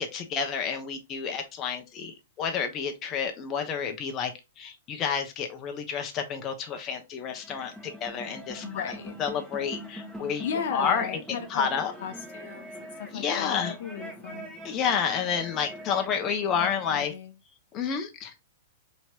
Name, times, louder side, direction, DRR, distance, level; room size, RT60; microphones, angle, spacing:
voice 1, 0.0-4.3 4.6-8.9 9.2-11.2 11.5-11.9 13.1-13.7 14.6-17.1 17.7-18.3, left 7 dB, 30° left, 0.8 m, -30 dB
sound 1, 7.3-17.2, equal, 5° right, 1.2 m, -43 dB
voice 2, 8.6-9.1 10.4-11.7 12.0-14.6 16.6-17.3, left 7 dB, 65° left, 0.7 m, -36 dB
4.3 x 3.1 x 2.8 m
hypercardioid pair, 120°, 0 cm